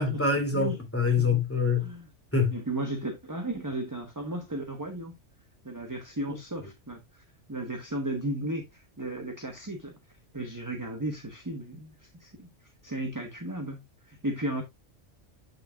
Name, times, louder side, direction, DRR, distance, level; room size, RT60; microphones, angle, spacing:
voice 1, 0.0-1.9 2.3-2.6 6.3-6.4, left 4 dB, 10° left, 2.7 m, -25 dB
voice 2, 2.5-5.1 5.6-9.9 10.3-12.5 12.8-14.6, right 1 dB, 15° right, 1.3 m, -35 dB
8.6 x 6.7 x 2.4 m
omnidirectional pair, 1.2 m